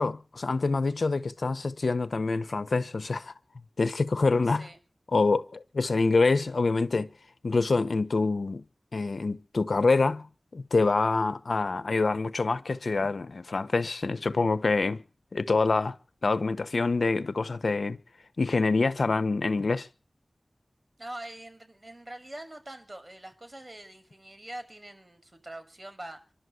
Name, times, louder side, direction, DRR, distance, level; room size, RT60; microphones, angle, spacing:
voice 1, 0.0-3.3 3.8-4.7 5.1-7.1 7.4-8.6 8.9-10.3 10.5-15.0 15.3-16.0 16.2-18.0 18.4-19.9, left 3 dB, 80° left, 1.2 m, -26 dB
voice 2, 4.4-4.8 21.0-26.2, right 1 dB, 35° right, 6.0 m, -43 dB
26.5 x 12.0 x 8.1 m
wide cardioid pair, 65°, 0 cm